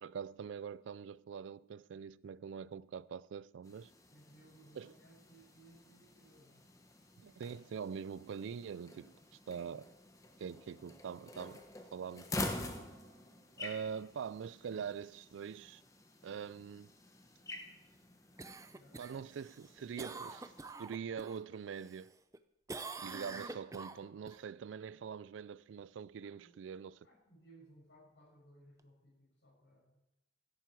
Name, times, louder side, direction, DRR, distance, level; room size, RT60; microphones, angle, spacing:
voice 1, 0.0-3.9 4.8-4.9 7.2-9.1 9.5-9.9 10.4-11.6 11.9-12.3 13.6-15.8 16.2-16.9 19.0-20.5 20.8-22.1 23.0-27.0, right 7 dB, 90° right, 0.3 m, -44 dB
sound 1, 3.6-20.7, left 2 dB, 15° left, 1.1 m, -48 dB
voice 2, 4.1-6.7 10.4-11.0 18.7-19.0 26.2-30.0, right 1 dB, 85° left, 6.1 m, -63 dB
Cough, 18.4-21.4 21.8-22.4 22.7-24.4 28.8-28.9, right 3 dB, 15° right, 0.5 m, -46 dB
16.5 x 9.1 x 4.7 m
head